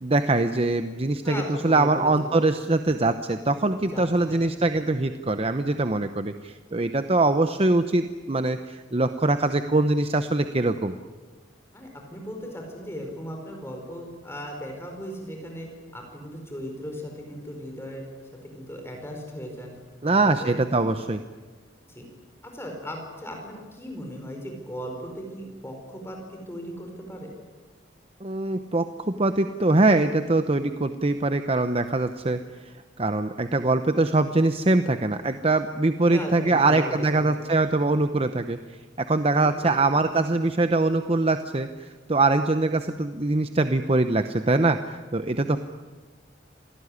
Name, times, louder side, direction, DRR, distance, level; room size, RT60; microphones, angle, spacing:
voice 1, 0.0-10.9 20.0-21.2 28.2-45.6, right 2 dB, 30° right, 9 dB, 0.8 m, -23 dB
voice 2, 1.2-2.4 3.9-4.4 4.7-4.8 11.7-18.0 18.4-19.7 20.0-20.8 21.9-22.1 22.4-26.2 26.5-27.3 36.1-37.3 39.4-40.0, equal, 15° left, 2 dB, 4.7 m, -37 dB
27.0 x 18.5 x 9.8 m, 1.4 s
head